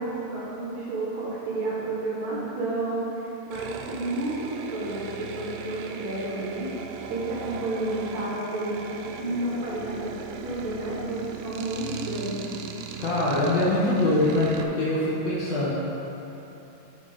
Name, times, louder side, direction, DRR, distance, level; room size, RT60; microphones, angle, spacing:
voice 1, 0.0-6.7 7.1-10.2 10.4-12.6, right 2 dB, 65° right, -6 dB, 2.1 m, -31 dB
sound 1, 3.5-14.6, right 6 dB, 80° right, 1.9 m, -39 dB
voice 2, 13.0-15.7, left 1 dB, 65° left, -7 dB, 1.9 m, -23 dB
7.4 x 5.6 x 4.9 m, 3.0 s
omnidirectional pair, 3.9 m